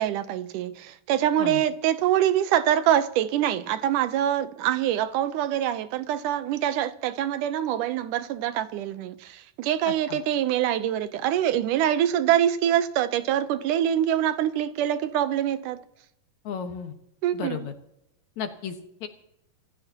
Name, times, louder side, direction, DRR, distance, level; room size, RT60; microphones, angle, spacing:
voice 1, 0.0-9.2 9.6-15.8 17.2-17.7, right 11 dB, 90° right, 2.4 m, -24 dB
voice 2, 9.9-10.2 16.4-16.9 17.3-17.7 18.4-19.1, left 7 dB, 70° left, 2.7 m, -34 dB
26.5 x 15.0 x 3.0 m
omnidirectional pair, 3.5 m